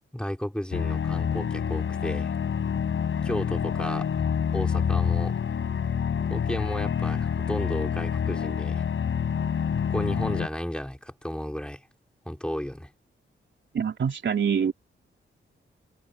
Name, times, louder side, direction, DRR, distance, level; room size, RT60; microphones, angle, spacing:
voice 1, 0.1-2.3 3.2-4.1 4.5-5.4 6.3-8.8 9.8-11.9 12.2-12.9, equal, 5° left, 4.3 m, -33 dB
sound 1, 0.7-10.5, left 7 dB, 70° left, 6.3 m, -27 dB
voice 2, 13.7-14.7, right 7 dB, 60° right, 3.6 m, -25 dB
cardioid pair, 90°, 21 cm